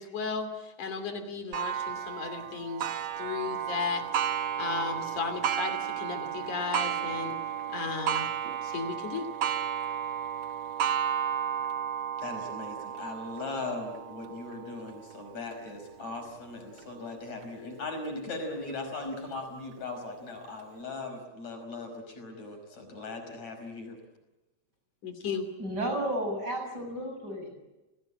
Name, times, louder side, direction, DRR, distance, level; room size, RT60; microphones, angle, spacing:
voice 1, 0.0-4.0 4.6-7.4 7.7-8.3 8.6-9.3 25.0-25.5, left 5 dB, 85° left, 7 dB, 4.4 m, -35 dB
Clock, 1.5-16.8 17.4-17.5 18.1-18.2 19.1-19.2, right 9 dB, 60° right, 1.4 m, -33 dB
voice 2, 12.2-24.0, left 3 dB, 65° left, 6 dB, 6.5 m, -39 dB
voice 3, 25.6-27.7, right 1 dB, 30° right, 4 dB, 7.6 m, -33 dB
29.0 x 19.0 x 8.8 m, 1.1 s
omnidirectional pair, 3.4 m